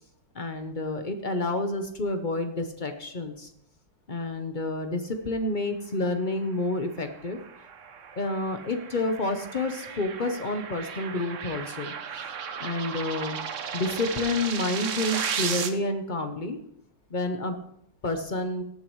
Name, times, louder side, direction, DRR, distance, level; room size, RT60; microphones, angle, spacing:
voice 1, 0.3-3.5 4.1-7.4 8.2-11.9 12.6-13.4 13.7-16.6 17.1-17.6 18.0-18.6, left 2 dB, 65° left, 6 dB, 0.4 m, -29 dB
sound 1, 6.8-15.7, right 7 dB, 55° right, 0.9 m, -35 dB
18.0 x 9.5 x 3.1 m, 0.72 s
omnidirectional pair, 2.3 m